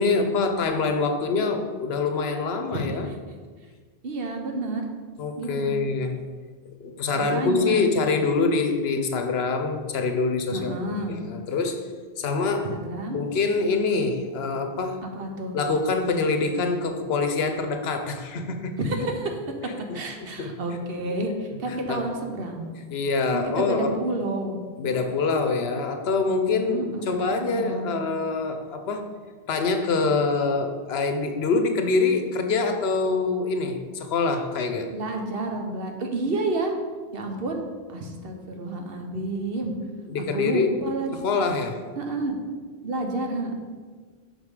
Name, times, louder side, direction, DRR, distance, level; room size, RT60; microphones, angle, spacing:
voice 1, 0.0-3.1 5.2-6.2 6.8-11.8 12.2-12.7 13.1-15.0 15.5-19.1 19.9-20.6 21.7-22.1 22.9-24.0 24.8-29.1 29.5-34.9 40.1-40.8 41.1-41.8, left 4 dB, 75° left, 6 dB, 0.9 m, -25 dB
voice 2, 2.7-3.2 4.0-4.9 5.4-5.8 7.2-7.9 10.5-11.2 12.7-13.2 15.1-15.6 18.8-19.3 19.9-22.7 23.3-24.6 26.6-28.0 34.9-36.7 37.1-37.6 37.9-39.7 40.3-41.2 42.0-42.3 42.8-43.5, right 2 dB, 65° right, 3 dB, 1.0 m, -30 dB
5.6 x 5.3 x 4.8 m, 1.5 s
omnidirectional pair, 1.1 m